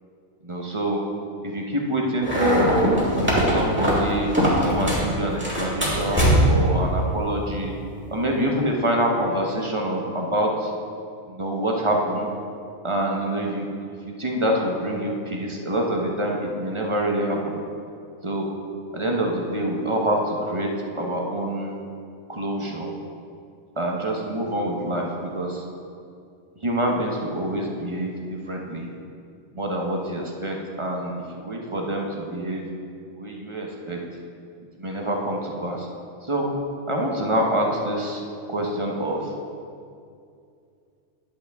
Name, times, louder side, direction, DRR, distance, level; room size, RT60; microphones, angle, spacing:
voice 1, 0.4-1.0 1.4-2.9 3.4-7.7 8.1-10.7 11.3-12.3 12.8-13.9 14.2-17.6 18.2-18.5 18.9-20.7 21.0-21.8 22.3-22.9 23.8-25.6 26.6-28.9 29.5-32.6 33.1-34.0 34.8-35.9 36.2-36.5 36.9-38.2 38.5-39.3, right 1 dB, 25° right, 0 dB, 0.7 m, -26 dB
sound 1, 2.2-5.1 5.4-6.7, equal, 10° right, 1.9 m, -21 dB
10.5 x 8.1 x 3.5 m, 2.4 s
omnidirectional pair, 1.4 m